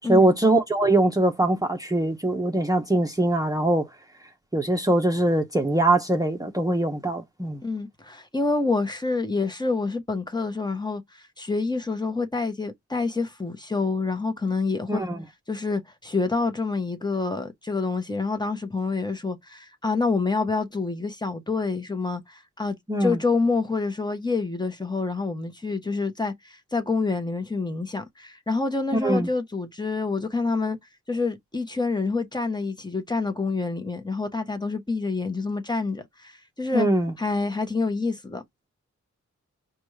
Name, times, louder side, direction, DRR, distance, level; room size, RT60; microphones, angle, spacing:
voice 1, 0.1-3.9 4.5-7.6 14.9-15.2 22.9-23.2 29.0-29.3 36.7-37.1, right 1 dB, 10° right, 0.8 m, -22 dB
voice 2, 7.6-15.0 15.5-30.8 31.1-36.9 37.2-38.4, left 3 dB, 15° left, 1.0 m, -27 dB
5.0 x 2.4 x 3.2 m
cardioid pair, 65°, 30 cm